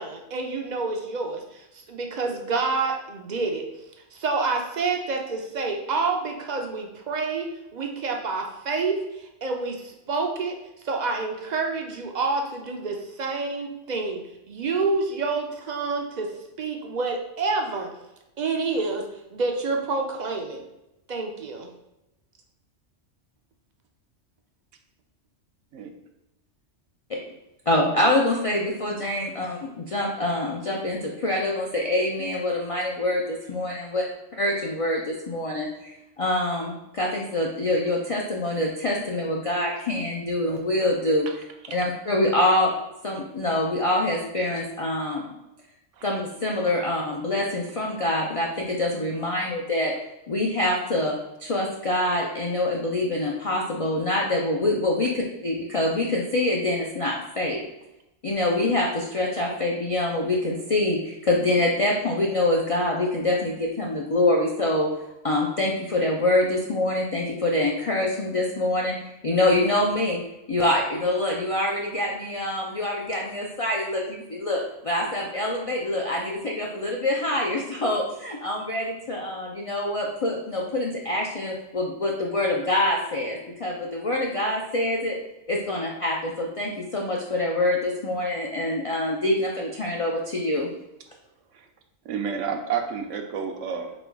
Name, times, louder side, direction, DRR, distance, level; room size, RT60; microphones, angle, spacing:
voice 1, 0.0-3.6 4.1-10.6 10.8-14.2 14.5-16.3 16.6-17.9 18.4-20.6 21.1-21.7, right 3 dB, 55° right, 2 dB, 0.5 m, -28 dB
voice 2, 27.7-34.0 34.4-41.3 41.7-42.7 43.0-45.3 46.0-49.9 50.3-57.6 58.2-64.9 65.2-69.0 69.2-70.2 70.5-85.2 85.5-90.7, left 1 dB, 60° left, -1 dB, 0.3 m, -25 dB
voice 3, 92.0-93.9, right 7 dB, 80° right, 5 dB, 0.9 m, -31 dB
4.1 x 2.3 x 4.4 m, 0.92 s
omnidirectional pair, 1.3 m